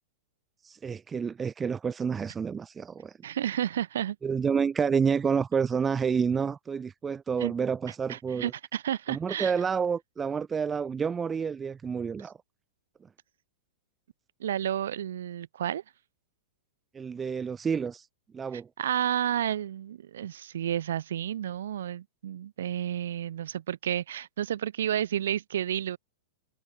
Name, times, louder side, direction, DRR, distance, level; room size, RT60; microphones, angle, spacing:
voice 1, 0.6-3.1 4.2-8.5 9.1-12.4 16.9-18.1 18.3-18.7, right 6 dB, 15° right, 0.3 m, -29 dB
voice 2, 3.2-4.2 7.4-7.5 8.1-9.5 14.4-15.8 18.8-26.0, right 10 dB, 60° right, 0.9 m, -31 dB
figure-of-eight pair, 100°, 0 cm